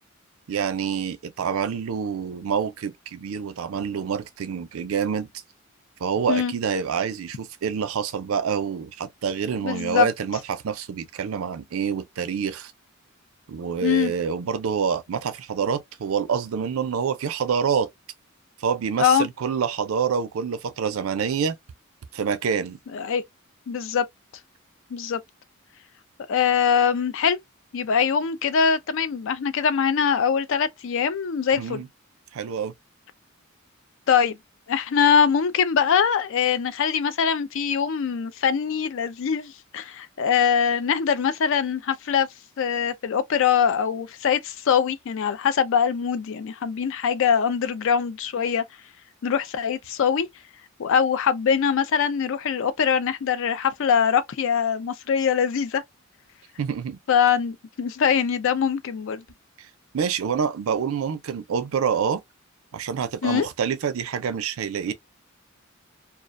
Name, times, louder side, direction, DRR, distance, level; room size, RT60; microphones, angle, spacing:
voice 1, 0.5-5.3 6.0-12.7 13.5-17.9 18.6-21.6 22.1-22.8 31.6-31.9 32.3-32.7 56.6-57.0 59.9-62.2 62.7-64.9, right 6 dB, 80° right, 0.4 m, -27 dB
voice 2, 9.6-10.1 13.8-14.1 19.0-19.3 22.9-23.2 23.7-24.0 24.9-25.2 26.3-27.4 27.7-31.8 34.1-34.4 34.7-42.3 42.6-48.6 49.2-50.3 50.8-55.8 57.1-59.2 63.2-63.5, left 7 dB, 65° left, 0.4 m, -22 dB
2.3 x 2.1 x 2.4 m
head